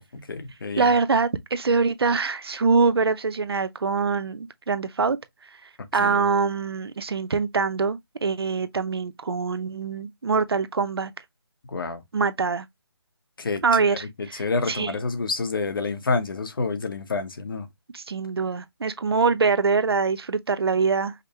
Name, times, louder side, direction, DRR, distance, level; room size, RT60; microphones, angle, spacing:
voice 1, 0.0-0.9 6.0-6.3 11.7-12.0 13.4-17.7, left 3 dB, 60° left, 0.9 m, -29 dB
voice 2, 0.8-5.2 5.9-11.1 12.1-12.7 13.6-14.9 17.9-21.1, right 4 dB, 75° right, 0.7 m, -24 dB
5.1 x 2.1 x 2.8 m
hypercardioid pair, 170°, 13 cm